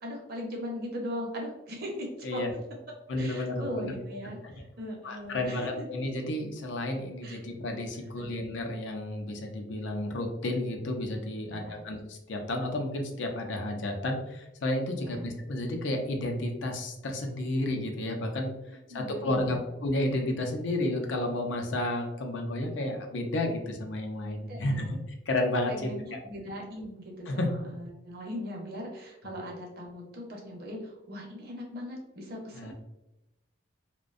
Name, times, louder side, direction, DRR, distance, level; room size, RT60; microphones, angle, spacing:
voice 1, 0.0-2.4 3.2-5.7 7.2-7.4 8.2-8.3 11.4-11.8 15.0-15.3 18.9-19.6 24.5-24.9 25.7-32.7, equal, 50° right, -1 dB, 0.7 m, -39 dB
voice 2, 3.1-3.9 5.0-18.5 18.9-25.0 25.3-25.9 27.3-27.5 32.5-32.7, left 1 dB, 70° left, 3 dB, 0.5 m, -31 dB
2.5 x 2.1 x 2.4 m, 0.94 s
head